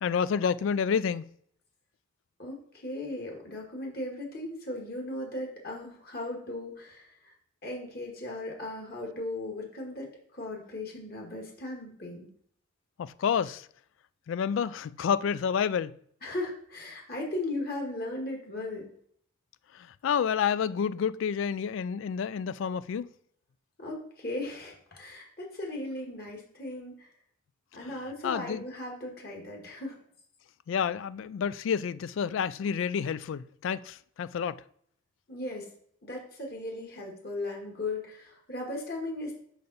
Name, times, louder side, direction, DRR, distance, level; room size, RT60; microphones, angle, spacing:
voice 1, 0.0-1.3 13.0-13.7 14.3-16.0 19.7-23.1 28.2-28.6 30.7-34.6, left 7 dB, 70° left, 0.3 m, -29 dB
voice 2, 2.4-7.3 7.6-12.3 16.2-18.9 23.8-27.1 27.7-30.0 35.3-35.7 36.0-39.3, left 2 dB, 50° left, 1.7 m, -37 dB
5.7 x 5.1 x 4.0 m
head